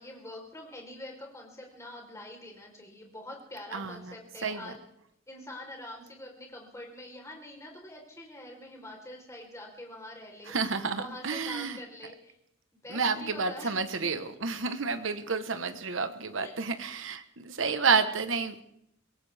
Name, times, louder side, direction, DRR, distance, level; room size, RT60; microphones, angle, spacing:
voice 1, 0.0-4.9 5.3-10.5 11.0-12.4 12.7-13.8 16.4-16.6, left 1 dB, 15° left, 0 dB, 3.9 m, -45 dB
voice 2, 3.7-4.1 4.4-4.7 10.5-11.8 12.9-18.6, right 5 dB, 70° right, 10 dB, 1.2 m, -30 dB
23.5 x 17.5 x 3.5 m, 0.77 s
head